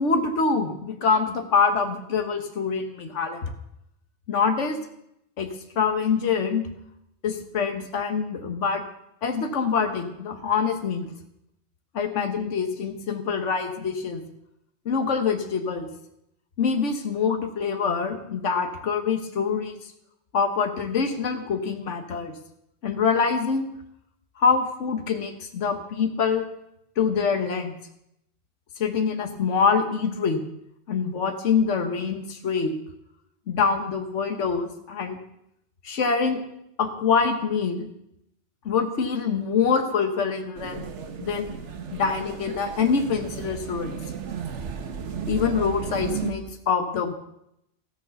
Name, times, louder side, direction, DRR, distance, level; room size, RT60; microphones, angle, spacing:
voice 1, 0.0-3.5 4.3-4.8 5.4-5.5 5.7-6.7 7.2-8.8 9.2-11.1 11.9-14.2 14.8-15.9 16.6-19.8 20.3-22.3 22.8-23.7 24.4-26.4 27.0-27.8 28.8-30.4 30.9-32.7 33.5-35.2 35.8-36.4 36.8-37.9 38.6-40.8 41.2-41.6 41.9-44.0 45.3-47.1, left 5 dB, 80° left, 6 dB, 1.5 m, -25 dB
sound 1, 40.5-46.3, right 6 dB, 75° right, 1.4 m, -34 dB
14.0 x 9.9 x 6.9 m, 0.80 s
omnidirectional pair, 1.2 m